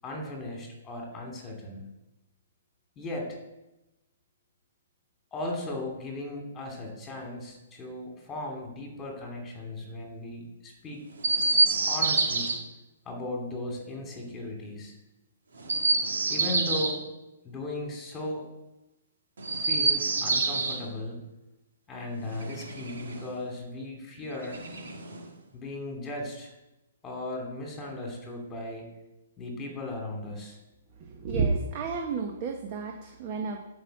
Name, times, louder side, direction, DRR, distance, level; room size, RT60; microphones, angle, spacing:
voice 1, 0.0-1.8 3.0-3.4 5.3-11.0 11.7-12.5 13.0-15.0 16.3-17.0 17.4-18.5 19.5-21.2 21.9-24.6 25.5-26.5 27.0-28.9 29.4-30.6, left 1 dB, 15° left, 0 dB, 2.8 m, -37 dB
Chirp tweet, 11.2-12.6 15.6-17.0 19.4-20.8 22.2-23.3 24.4-25.3, right 3 dB, 80° right, 2.6 m, -27 dB
voice 2, 31.0-33.6, right 4 dB, 30° right, 3 dB, 1.2 m, -31 dB
11.5 x 5.6 x 7.9 m, 0.98 s
hypercardioid pair, 160°, 0 cm